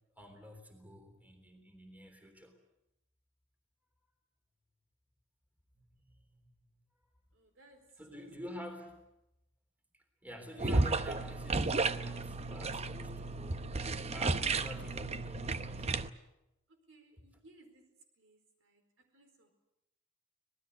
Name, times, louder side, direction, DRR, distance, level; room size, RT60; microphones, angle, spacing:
voice 1, 0.2-2.6 5.7-6.7 8.0-9.1 9.9-13.7 14.1-16.0, equal, 10° right, 5 dB, 3.4 m, -48 dB
voice 2, 7.4-7.8 16.9-17.9 18.2-18.4 18.7-18.8 19.1-19.5, right 2 dB, 65° right, 6 dB, 4.4 m, -61 dB
sound 1, 10.6-16.1, right 3 dB, 30° right, 0.8 m, -33 dB
25.5 x 19.5 x 8.1 m, 0.88 s
head